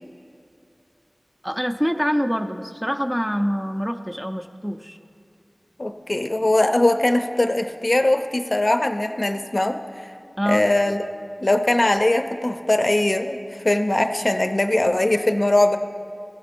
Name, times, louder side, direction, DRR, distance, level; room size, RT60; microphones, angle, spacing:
voice 1, 1.4-5.0 10.4-10.7, equal, 5° right, 6 dB, 0.4 m, -25 dB
voice 2, 5.8-10.1 10.5-11.0 11.4-13.4 13.6-15.8, left 1 dB, 45° left, 6 dB, 0.5 m, -20 dB
15.5 x 5.1 x 4.4 m, 2.7 s
wide cardioid pair, 55°, 0 cm